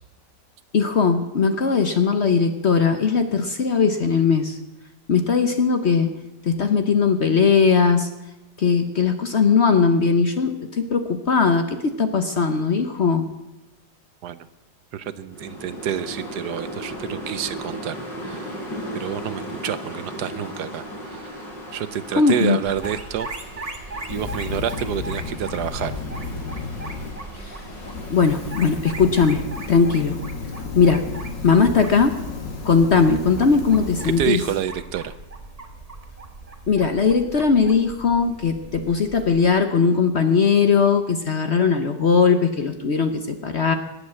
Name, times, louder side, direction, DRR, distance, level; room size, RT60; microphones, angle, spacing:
voice 1, 0.7-4.6 5.1-8.1 8.6-13.3 22.1-22.6 27.3-27.6 28.1-30.2 30.7-31.1 31.4-32.2 32.6-34.4 36.7-43.8, left 5 dB, 45° left, 8 dB, 0.9 m, -19 dB
voice 2, 14.9-18.6 18.9-23.3 24.1-26.0 34.0-35.1, right 9 dB, 70° right, 14 dB, 1.2 m, -28 dB
sound 1, 15.3-28.5, equal, 90° left, 5.2 m, -37 dB
sound 2, 22.6-39.5, right 2 dB, 20° right, 1.5 m, -39 dB
Fire, 24.0-27.2 27.6-34.6, left 4 dB, 70° left, 3.0 m, -33 dB
19.0 x 8.1 x 7.5 m, 0.98 s
omnidirectional pair, 1.9 m